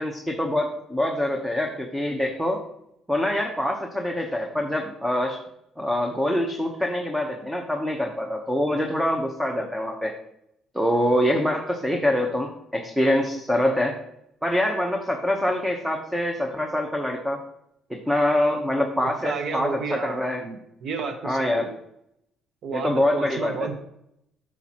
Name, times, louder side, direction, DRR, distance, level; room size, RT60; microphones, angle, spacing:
voice 1, 0.0-2.6 3.1-5.4 5.8-10.1 10.7-14.0 14.4-17.4 17.9-20.4 21.2-21.7 22.7-23.5, left 1 dB, 5° right, 2 dB, 0.8 m, -25 dB
voice 2, 19.0-21.8 22.6-23.7, right 5 dB, 60° right, 7 dB, 0.9 m, -32 dB
8.9 x 6.1 x 2.9 m, 0.76 s
cardioid pair, 115°, 0 cm